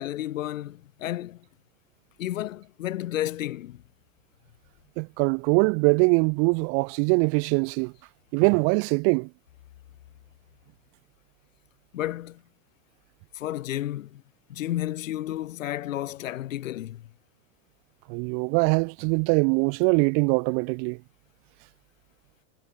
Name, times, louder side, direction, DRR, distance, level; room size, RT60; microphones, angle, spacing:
voice 1, 0.0-1.4 2.2-3.8 11.9-12.4 13.3-14.2 14.5-17.1, left 13 dB, 85° left, 7.7 m, -32 dB
voice 2, 5.0-7.9 8.3-9.3 18.1-21.0, right 40 dB or more, 35° right, 2.9 m, -22 dB
supercardioid pair, 180°, 38 cm